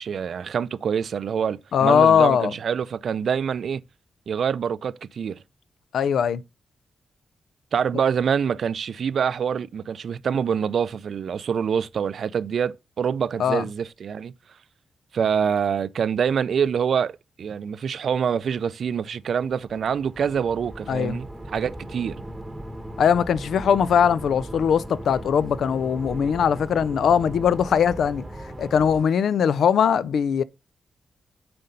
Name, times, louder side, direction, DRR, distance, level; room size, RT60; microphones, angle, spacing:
voice 1, 0.0-3.8 4.3-5.4 7.7-14.3 15.1-22.2, right 7 dB, 70° right, 0.4 m, -25 dB
voice 2, 1.7-2.5 5.9-6.4 13.4-13.6 20.9-21.2 23.0-28.2 28.6-30.4, left 7 dB, 85° left, 0.4 m, -20 dB
sound 1, 19.4-29.0, right 1 dB, 15° right, 0.9 m, -38 dB
7.6 x 4.3 x 5.2 m
wide cardioid pair, 110°, 0 cm